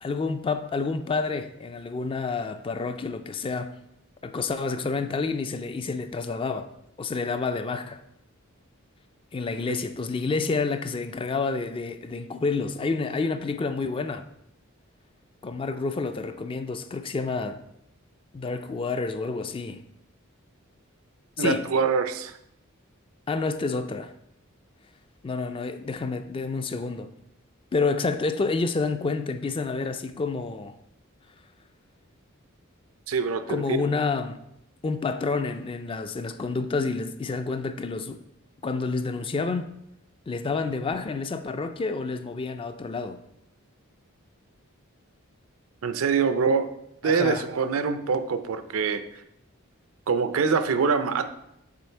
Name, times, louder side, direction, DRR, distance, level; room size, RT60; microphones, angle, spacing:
voice 1, 0.0-3.7 4.2-6.7 7.0-8.0 9.3-14.2 15.4-17.6 18.3-19.8 21.4-21.6 23.3-24.1 25.2-27.1 27.7-30.8 33.5-34.4 34.8-38.2 38.6-39.7 40.3-43.2 47.0-47.5, left 4 dB, 25° left, 0.3 m, -29 dB
voice 2, 21.4-22.4 33.1-33.8 45.8-46.7 47.0-49.0 50.1-51.3, right 5 dB, 80° right, 0.5 m, -24 dB
7.5 x 3.2 x 4.4 m
head